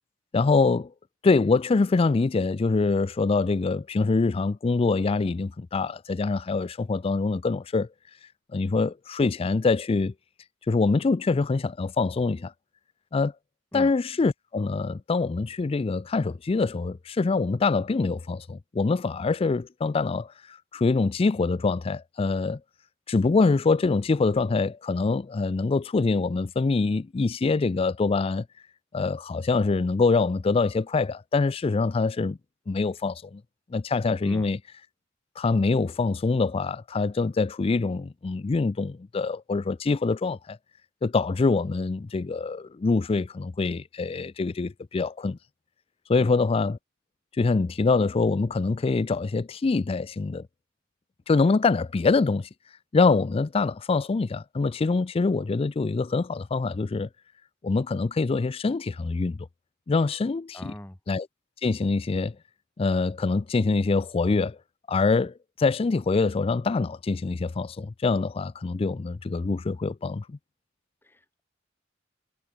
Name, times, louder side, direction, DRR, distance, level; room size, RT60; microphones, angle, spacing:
voice 1, 0.3-0.9 1.2-7.9 8.5-10.1 10.7-12.5 13.1-13.3 13.7-22.6 23.1-28.5 28.9-32.4 32.7-33.4 33.7-34.6 35.4-40.6 41.0-45.4 46.1-46.8 47.4-50.5 51.3-52.5 52.9-57.1 57.6-59.4 59.9-60.7 61.1-61.3 61.6-62.3 62.8-64.6 64.9-70.4, left 4 dB, 30° left, 0.4 m, -24 dB
voice 2, 60.5-61.0 71.0-71.4, left 1 dB, 10° left, 1.1 m, -39 dB
head